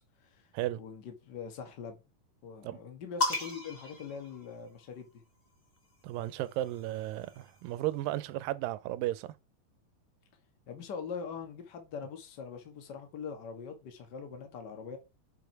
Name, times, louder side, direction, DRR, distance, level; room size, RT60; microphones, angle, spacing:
voice 1, 0.2-0.5 0.8-2.0 2.4-5.2 10.7-15.0, left 6 dB, 45° left, 1.4 m, -42 dB
sound 1, 3.2-5.0 6.1-7.8, left 2 dB, 25° left, 1.5 m, -37 dB
voice 2, 6.0-9.3, right 15 dB, 90° right, 2.3 m, -34 dB
6.8 x 4.9 x 4.6 m
omnidirectional pair, 3.9 m